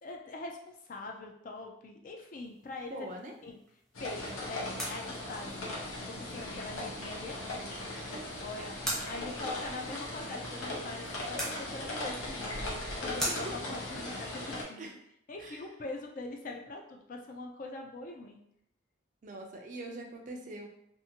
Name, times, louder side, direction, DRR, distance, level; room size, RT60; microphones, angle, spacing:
voice 1, 0.0-3.1 3.4-3.6 4.0-5.7 6.1-14.9 15.3-18.4, left 2 dB, 40° left, 1 dB, 0.3 m, -43 dB
sound 1, 2.3-14.1, equal, ahead, 0.6 m, -44 dB
voice 2, 2.9-3.3 8.6-8.7 13.2-13.6 14.8-15.0 15.4-15.7 19.2-20.7, right 1 dB, 40° right, 2 dB, 0.4 m, -43 dB
sound 2, 3.9-14.6, left 1 dB, 85° left, 0.8 m, -38 dB
2.6 x 2.5 x 2.7 m, 0.74 s
head